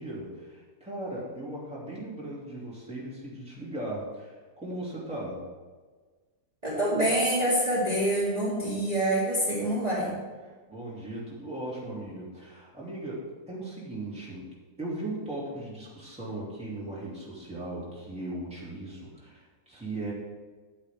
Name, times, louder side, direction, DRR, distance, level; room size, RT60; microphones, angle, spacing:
voice 1, 0.0-5.4 10.4-14.5 14.8-20.1, right 1 dB, 5° right, -6 dB, 2.7 m, -38 dB
voice 2, 6.6-10.2, right 1 dB, 25° right, -8 dB, 2.4 m, -26 dB
10.5 x 9.7 x 3.6 m, 1.4 s
omnidirectional pair, 1.7 m